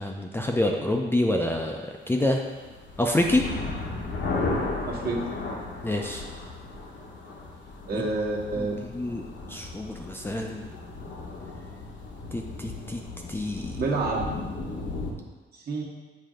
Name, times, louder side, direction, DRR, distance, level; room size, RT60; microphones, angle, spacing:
voice 1, 0.0-2.4 3.0-3.4 5.8-6.2 7.9-8.0 8.6-8.7 8.9-9.2 9.5-10.7 12.3-13.0 13.3-13.8, left 1 dB, 10° left, 1 dB, 0.5 m, -27 dB
sound 1, 2.3-15.1, left 3 dB, 70° left, 1.0 m, -35 dB
voice 2, 4.8-5.2 7.9-8.7 13.8-14.4 15.5-15.8, right 3 dB, 55° right, -3 dB, 1.3 m, -28 dB
7.5 x 2.7 x 5.0 m, 1.3 s
cardioid pair, 105°, 20 cm